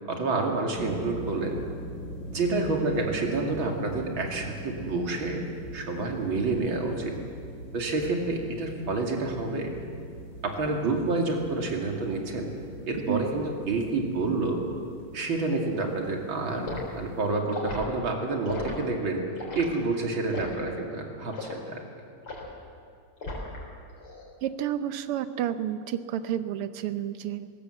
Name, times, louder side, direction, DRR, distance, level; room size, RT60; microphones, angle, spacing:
voice 1, 0.1-1.6 2.3-5.4 5.7-7.2 7.7-9.7 10.4-12.5 12.9-14.6 15.1-19.2 19.5-21.8, right 3 dB, 65° right, 1 dB, 3.3 m, -28 dB
sound 1, 0.7-17.3, right 1 dB, 35° left, 4.0 m, -42 dB
Liquid, 16.7-16.9 17.5-17.8 18.5-18.7 19.4-19.7 20.3-20.6 21.3-21.6 22.3-22.5 23.2-23.6 24.0-24.2, left 2 dB, 75° left, 4.9 m, -36 dB
voice 2, 24.4-27.5, right 11 dB, 90° right, 12 dB, 1.8 m, -30 dB
20.5 x 17.5 x 8.1 m, 2.4 s
omnidirectional pair, 2.4 m